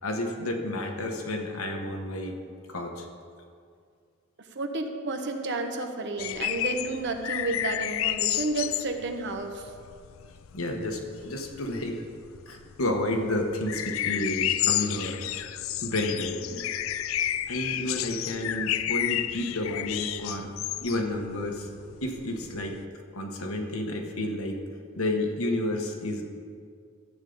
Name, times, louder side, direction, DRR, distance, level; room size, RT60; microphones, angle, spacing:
voice 1, 0.0-2.4 2.7-3.1 10.5-12.0 12.5-15.5 15.8-16.7 17.5-20.5 20.8-21.7 22.0-22.8 23.1-24.6 24.9-26.2, left 1 dB, 85° left, 2 dB, 1.3 m, -31 dB
voice 2, 4.5-9.7, right 2 dB, 55° right, 5 dB, 1.0 m, -31 dB
sound 1, 6.2-22.8, left 12 dB, 70° left, 0.4 m, -31 dB
13.5 x 8.3 x 4.0 m, 2.2 s
head